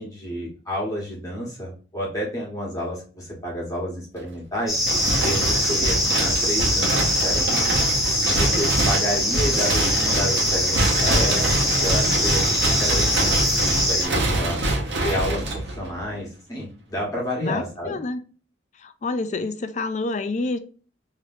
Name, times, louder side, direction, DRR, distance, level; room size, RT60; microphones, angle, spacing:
voice 1, 0.0-4.8 5.2-7.6 8.2-11.5 11.8-14.6 15.0-18.0, equal, 20° left, 1.5 m, -30 dB
sound 1, 4.7-14.1, left 1 dB, ahead, 1.0 m, -23 dB
sound 2, 4.8-16.0, right 1 dB, 85° right, 1.0 m, -25 dB
voice 2, 17.4-18.2 18.8-20.6, left 3 dB, 40° left, 0.4 m, -28 dB
3.2 x 2.9 x 2.6 m
head